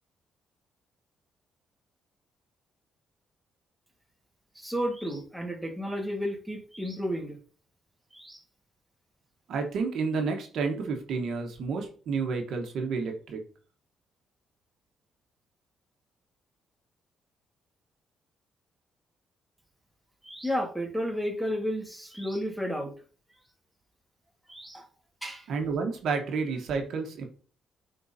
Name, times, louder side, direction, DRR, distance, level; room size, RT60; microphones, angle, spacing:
voice 1, 4.5-7.4 8.1-8.4 20.2-22.9 24.5-24.9 25.2-25.5, equal, 5° right, 1 dB, 1.6 m, -32 dB
voice 2, 9.5-13.4 25.5-27.2, right 4 dB, 70° right, 3 dB, 1.1 m, -30 dB
9.2 x 3.9 x 2.7 m, 0.40 s
cardioid pair, 90°, 0 cm